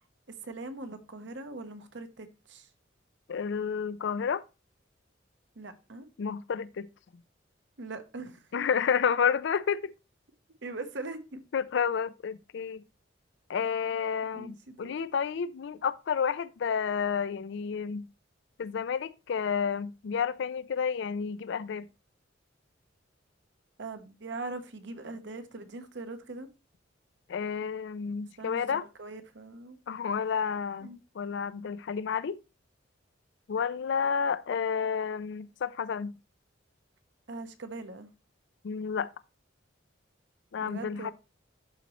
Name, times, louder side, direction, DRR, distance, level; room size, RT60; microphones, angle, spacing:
voice 1, 0.4-2.7 5.6-6.1 7.8-8.6 10.6-11.4 14.3-15.0 23.8-26.5 28.4-29.8 30.8-31.0 37.3-38.1 40.6-41.1, right 2 dB, 65° right, 0.9 m, -41 dB
voice 2, 3.3-4.4 6.2-6.9 8.5-9.9 11.5-12.8 13.5-18.1 18.6-21.9 27.3-28.8 29.9-32.4 33.5-36.1 38.6-39.1 40.5-41.1, left 6 dB, 65° left, 0.4 m, -30 dB
11.5 x 4.1 x 3.0 m
head